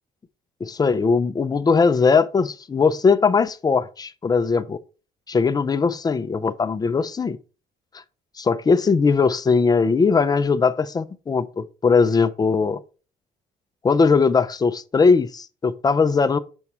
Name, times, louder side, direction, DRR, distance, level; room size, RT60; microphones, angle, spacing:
voice 1, 0.6-4.8 5.3-7.4 8.4-12.8 13.8-16.4, left 5 dB, 25° left, 0.6 m, -19 dB
7.1 x 4.8 x 4.3 m
cardioid pair, 110°, 17 cm